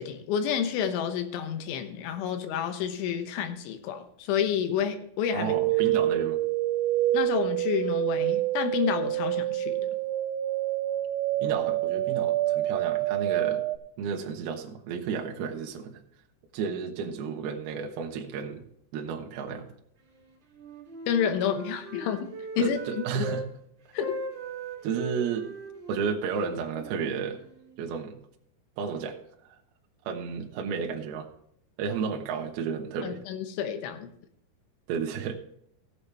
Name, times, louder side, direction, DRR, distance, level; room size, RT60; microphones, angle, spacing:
voice 1, 0.0-5.5 7.1-9.9 21.1-22.3 22.6-22.8 23.2-23.3 23.9-24.2 33.0-34.1, left 8 dB, 75° left, 8 dB, 3.3 m, -29 dB
voice 2, 5.3-6.4 11.4-13.6 14.0-16.0 16.5-18.6 18.9-19.7 22.6-23.5 24.8-25.5 25.9-27.4 27.8-28.2 28.8-29.2 30.1-31.3 31.8-33.2 34.9-35.3, right 6 dB, 70° right, 2 dB, 2.6 m, -32 dB
sound 1, 5.5-13.8, right 14 dB, 90° right, 3.3 m, -27 dB
Wind instrument woodwind instrument, 20.5-23.5 23.9-27.8, right 2 dB, 45° right, 1.5 m, -39 dB
15.0 x 8.3 x 3.4 m, 0.70 s
omnidirectional pair, 5.7 m